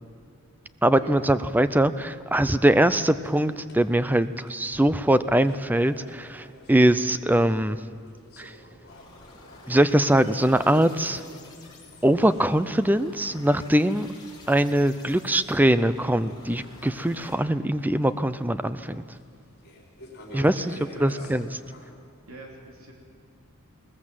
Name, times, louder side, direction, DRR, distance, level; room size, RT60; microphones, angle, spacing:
voice 1, 0.8-7.8 8.4-8.5 9.7-11.2 12.0-14.1 14.5-19.0 20.3-20.7 21.0-21.5, right 1 dB, 10° right, 13 dB, 0.5 m, -22 dB
sound 1, 2.6-21.9, left 1 dB, 45° left, 4.2 m, -53 dB
sound 2, 8.9-17.4, left 3 dB, 20° left, 4.0 m, -49 dB
sound 3, 10.5-11.5 12.2-13.0 13.2-14.0, left 3 dB, 70° left, 2.4 m, -48 dB
voice 2, 20.3-21.3 22.3-22.9, right 1 dB, 70° right, 0 dB, 3.1 m, -43 dB
21.0 x 19.5 x 7.6 m, 2.4 s
head